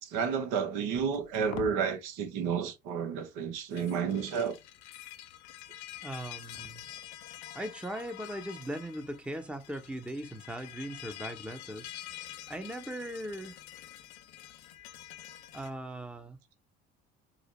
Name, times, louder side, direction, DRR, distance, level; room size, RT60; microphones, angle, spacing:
voice 1, 0.0-4.6, right 6 dB, 70° right, 0.9 m, -31 dB
sound 1, 0.9-1.8 3.6-15.7, left 12 dB, 80° left, 0.6 m, -47 dB
voice 2, 6.0-6.9 7.5-11.9 12.5-13.6 15.5-16.4, right 1 dB, 5° right, 0.7 m, -39 dB
4.8 x 2.1 x 3.0 m
hypercardioid pair, 60°, 32 cm